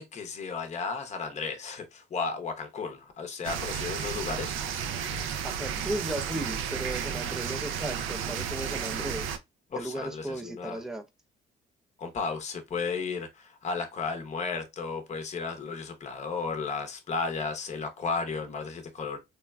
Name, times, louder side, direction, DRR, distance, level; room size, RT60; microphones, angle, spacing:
voice 1, 0.0-4.5 9.7-10.8 12.0-19.2, left 4 dB, 35° left, 0.7 m, -34 dB
sound 1, 3.4-9.4, right 7 dB, 85° right, 0.4 m, -33 dB
voice 2, 5.4-9.3 9.8-11.0, right 1 dB, ahead, 0.4 m, -35 dB
3.3 x 2.1 x 2.3 m
cardioid pair, 90°, 20 cm